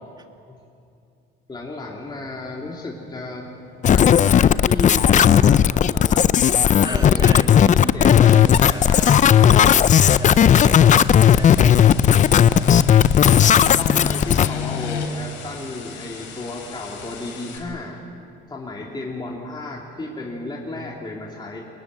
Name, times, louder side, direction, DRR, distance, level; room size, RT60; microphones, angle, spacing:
voice 1, 1.5-3.5 3.9-6.3 6.7-9.6 13.4-18.0 18.5-21.6, left 2 dB, 20° left, -3 dB, 3.3 m, -33 dB
sound 1, 2.1-15.1, left 6 dB, 90° left, 3.2 m, -34 dB
sound 2, 3.8-14.5, left 9 dB, 40° left, 0.5 m, -14 dB
voice 2, 6.8-7.7 8.0-9.2 10.2-12.0 12.5-12.8, right 2 dB, 20° right, 4 dB, 2.4 m, -35 dB
sound 3, 7.8-17.6, left 6 dB, 75° left, 4.7 m, -40 dB
23.5 x 20.0 x 9.3 m, 2.6 s
supercardioid pair, 90°, 20 cm